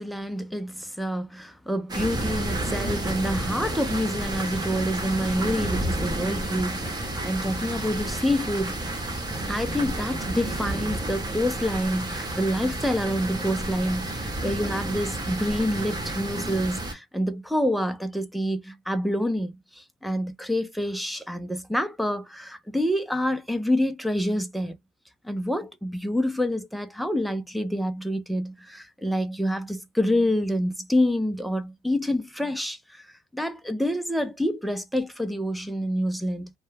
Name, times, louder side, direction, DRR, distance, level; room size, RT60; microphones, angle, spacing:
voice 1, 0.0-8.8 9.5-24.8 25.2-33.1 33.3-36.5, equal, ahead, 0.4 m, -27 dB
sound 1, 1.9-16.9, right 1 dB, 25° right, 0.9 m, -30 dB
2.2 x 2.0 x 3.1 m
cardioid pair, 110°, 17 cm